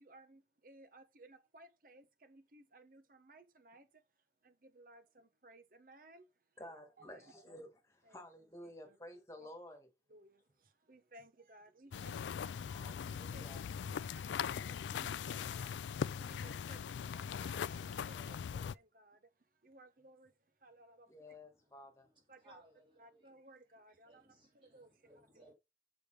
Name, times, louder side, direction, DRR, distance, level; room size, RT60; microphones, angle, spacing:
voice 1, 0.0-3.9 4.4-6.2 6.6-7.3 8.0-8.2 8.6-9.0 9.4-9.5 10.1-10.4 10.9-13.5 13.8-14.3 14.9-15.7 16.3-19.2 19.6-20.3 20.6-21.1 22.3-22.6 23.0-24.2 24.5-24.9, right 1 dB, 50° right, 1.1 m, -60 dB
voice 2, 6.6-9.9 12.6-13.6 17.7-18.4 21.1-22.1, left 1 dB, 15° left, 1.9 m, -53 dB
sound 1, 11.9-18.7, left 7 dB, 85° left, 0.3 m, -40 dB
voice 3, 21.3-21.7 22.0-23.3 24.0-25.5, right 1 dB, 30° right, 3.2 m, -65 dB
6.9 x 5.2 x 4.9 m
head